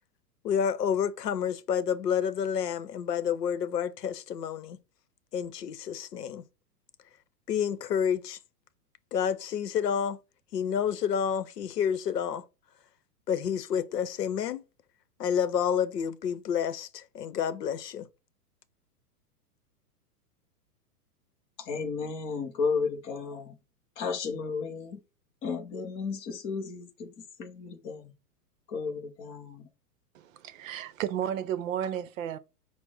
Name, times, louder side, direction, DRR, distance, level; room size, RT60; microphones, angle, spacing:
voice 1, 0.4-4.8 5.3-6.4 7.5-8.4 9.1-10.2 10.5-12.4 13.3-14.6 15.2-18.1, left 8 dB, 85° left, 0.7 m, -29 dB
voice 2, 21.6-23.5 24.0-25.0 25.4-28.1 28.7-29.7, left 5 dB, 15° left, 0.3 m, -33 dB
voice 3, 30.1-32.4, right 10 dB, 55° right, 0.7 m, -33 dB
6.0 x 2.0 x 3.6 m
hypercardioid pair, 115°, 47 cm